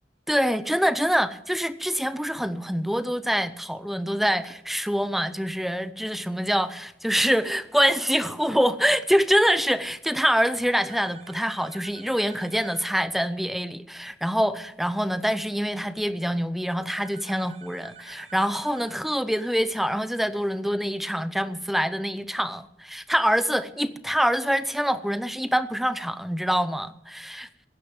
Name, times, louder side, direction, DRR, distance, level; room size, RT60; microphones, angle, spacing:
voice 1, 0.3-27.5, equal, ahead, 0.6 m, -25 dB
sound 1, 10.9-13.0 16.9-19.0, right 7 dB, 35° right, 0.9 m, -49 dB
15.0 x 9.9 x 7.9 m
head